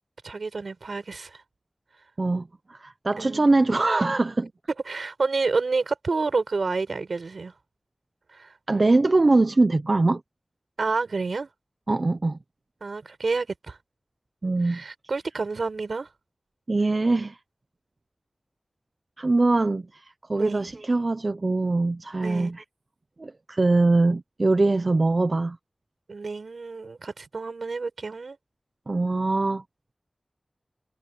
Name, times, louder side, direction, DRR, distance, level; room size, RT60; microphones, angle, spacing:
voice 1, 0.2-1.4 3.2-3.5 4.9-7.5 8.3-8.6 10.8-11.5 12.8-13.8 14.6-16.1 20.3-20.7 22.2-22.5 26.1-28.4, right 4 dB, 80° right, 7.9 m, -29 dB
voice 2, 2.2-4.5 8.7-10.2 11.9-12.4 14.4-14.8 16.7-17.4 19.2-22.6 23.2-25.6 28.9-29.6, right 2 dB, 50° right, 0.8 m, -22 dB
wide cardioid pair, 65°, 0 cm